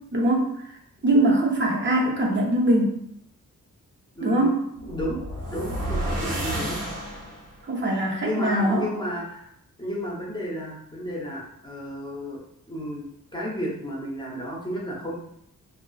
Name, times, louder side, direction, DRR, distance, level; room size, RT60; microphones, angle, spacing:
voice 1, 0.1-0.5 1.0-3.0 4.2-4.7 7.7-8.9, right 1 dB, 35° right, -2 dB, 0.5 m, -22 dB
voice 2, 4.2-4.5 4.8-6.8 8.2-9.5 9.8-12.4 12.7-15.1, equal, 15° left, -4 dB, 0.7 m, -32 dB
sound 1, 4.8-7.6, right 1 dB, 90° right, 0.8 m, -30 dB
2.5 x 2.3 x 2.3 m, 0.74 s
wide cardioid pair, 100°, 34 cm